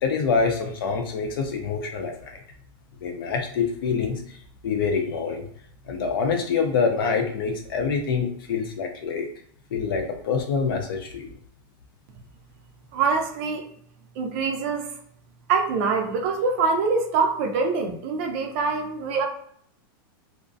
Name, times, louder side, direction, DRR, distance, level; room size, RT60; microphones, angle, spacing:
voice 1, 0.0-2.4 3.0-4.4 4.6-5.5 5.9-9.3 9.7-11.3, left 5 dB, 75° left, 3 dB, 0.6 m, -26 dB
voice 2, 12.9-13.7 14.2-14.9 15.5-19.2, right 4 dB, 35° right, 3 dB, 0.4 m, -24 dB
2.5 x 2.1 x 2.6 m, 0.64 s
supercardioid pair, 175°, 12 cm